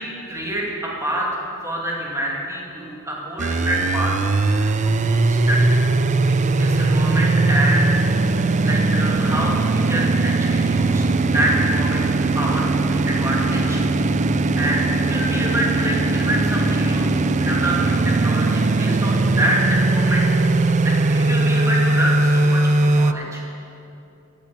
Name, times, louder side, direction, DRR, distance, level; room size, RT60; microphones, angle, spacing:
voice 1, 0.0-5.8 6.3-8.0 8.6-11.1 11.3-13.8 14.4-20.2 20.8-23.4, right 1 dB, 15° right, -3 dB, 2.6 m, -27 dB
sound 1, 3.4-23.1, right 2 dB, 35° right, 0.4 m, -19 dB
14.5 x 8.7 x 8.2 m, 2.8 s
head